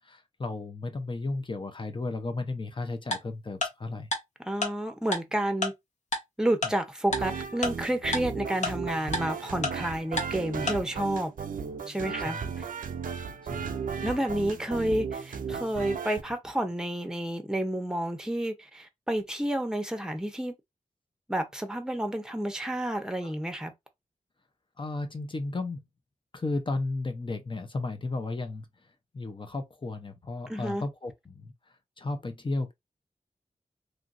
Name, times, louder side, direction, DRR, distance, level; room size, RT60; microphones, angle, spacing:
voice 1, 0.0-4.1 6.6-6.7 12.2-12.5 13.5-14.0 15.5-15.6 23.2-23.3 24.8-25.8 26.3-28.7 29.1-31.5 32.0-32.7, left 2 dB, 40° left, 0.6 m, -34 dB
Tick-tock, 3.1-3.2 3.6-3.7 4.1-4.2 4.6-4.7 5.1-5.2 5.6-5.7 6.1-6.2 6.6-6.7 7.1-7.2 7.6-7.7 8.1-8.2 8.6-8.7 9.1-9.2 9.6-9.7 10.2-10.3 10.7-10.8, left 2 dB, 60° left, 1.0 m, -28 dB
voice 2, 4.4-5.7 6.4-11.3 11.9-12.7 14.0-20.5 21.3-23.7 30.5-30.8, right 1 dB, 5° right, 0.7 m, -30 dB
sound 1, 7.1-16.2, right 6 dB, 90° right, 0.4 m, -35 dB
3.0 x 2.5 x 2.5 m
wide cardioid pair, 65°, 14 cm